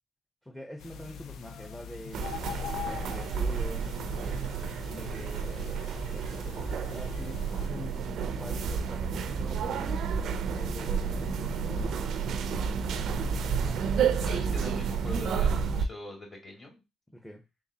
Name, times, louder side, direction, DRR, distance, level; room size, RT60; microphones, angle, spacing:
voice 1, 0.4-2.3 2.8-4.4 4.9-9.9 10.5-12.2 13.6-14.4 17.1-17.4, equal, 5° left, 3 dB, 0.7 m, -45 dB
sound 1, 0.8-7.7, left 8 dB, 80° left, 0.4 m, -43 dB
sound 2, 2.1-15.9, right 6 dB, 75° right, 0.4 m, -30 dB
voice 2, 14.2-16.8, left 2 dB, 35° left, -1 dB, 2.3 m, -44 dB
3.8 x 3.2 x 2.8 m, 0.25 s
cardioid pair, 90°, 0 cm